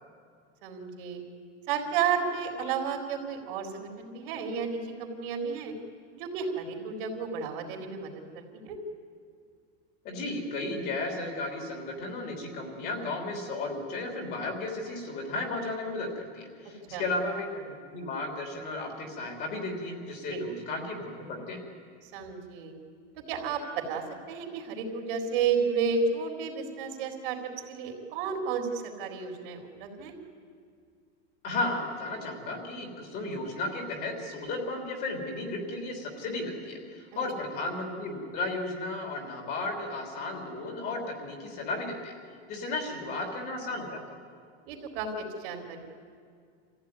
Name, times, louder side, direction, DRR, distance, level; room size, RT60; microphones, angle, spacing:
voice 1, 0.6-1.2 1.7-5.7 6.2-8.8 16.9-17.1 20.3-20.4 22.0-22.7 23.3-27.4 27.7-30.1 44.7-45.8, right 6 dB, 55° right, 2 dB, 3.9 m, -32 dB
voice 2, 10.0-21.6 31.4-42.1 42.5-44.0, left 2 dB, 30° left, 3 dB, 3.4 m, -34 dB
26.0 x 15.5 x 9.7 m, 2.2 s
supercardioid pair, 180°, 32 cm